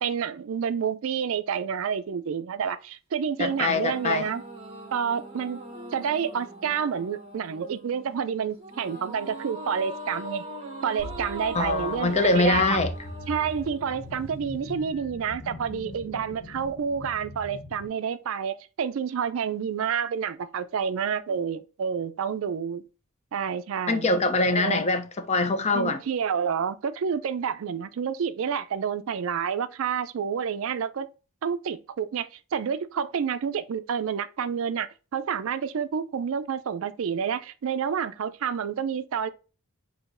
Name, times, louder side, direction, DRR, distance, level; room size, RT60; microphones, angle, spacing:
voice 1, 0.0-4.4 4.9-5.6 5.9-10.4 10.8-12.8 13.3-22.8 23.3-24.1 24.5-24.8 25.7-31.1 31.4-39.3, right 7 dB, 65° right, 0.4 m, -29 dB
voice 2, 3.4-4.3 11.5-12.9 23.9-26.0, left 3 dB, 30° left, 0.5 m, -23 dB
sound 1, 3.4-14.7, right 1 dB, 25° right, 0.9 m, -41 dB
sound 2, 11.0-17.9, left 1 dB, 65° left, 0.7 m, -41 dB
6.3 x 2.8 x 2.5 m
head